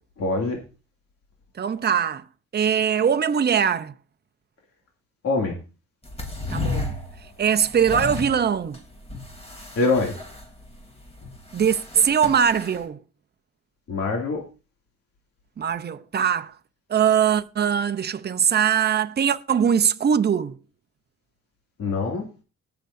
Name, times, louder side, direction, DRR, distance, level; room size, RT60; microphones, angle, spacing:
voice 1, 0.2-0.6 5.2-5.6 9.8-10.1 13.9-14.4 21.8-22.3, left 3 dB, 55° left, 2.6 m, -23 dB
voice 2, 1.6-2.2 2.5-3.9 6.5-6.9 7.4-8.8 11.5-13.0 15.6-16.5 16.9-20.6, right 8 dB, 35° right, 0.7 m, -21 dB
sound 1, 6.0-12.8, left 2 dB, 20° left, 3.3 m, -34 dB
20.0 x 6.9 x 2.7 m
cardioid pair, 90°, 30 cm